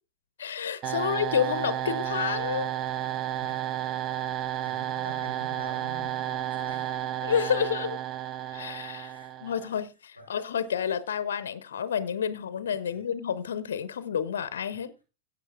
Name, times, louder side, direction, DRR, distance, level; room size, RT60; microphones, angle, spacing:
voice 1, 0.4-2.7 7.2-8.0 8.5-9.1 9.4-14.9, left 8 dB, 65° left, 0.7 m, -29 dB
sound 1, 0.8-9.7, right 11 dB, 35° right, 0.5 m, -32 dB
voice 2, 4.6-7.0 9.0-9.5 10.2-10.4 12.8-13.1 14.7-14.8, equal, 85° right, 3.7 m, -46 dB
17.0 x 8.2 x 2.4 m
figure-of-eight pair, 90°, 0 cm